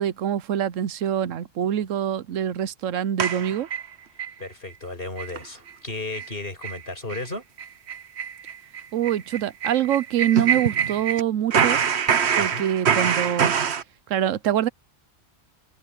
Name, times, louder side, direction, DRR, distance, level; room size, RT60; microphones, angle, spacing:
voice 1, 0.0-3.7 8.9-11.8 12.4-13.5 14.1-14.7, right 10 dB, 85° right, 1.1 m, -25 dB
sound 1, 3.2-4.3 4.7-4.8 5.2-5.4 5.7-5.8 6.1-6.3 6.6-6.8 7.1-7.2 7.6-11.2 11.5-13.8, right 7 dB, 60° right, 1.2 m, -24 dB
voice 2, 4.4-7.5 12.4-12.7, left 2 dB, 50° left, 5.9 m, -34 dB
omnidirectional pair, 1.3 m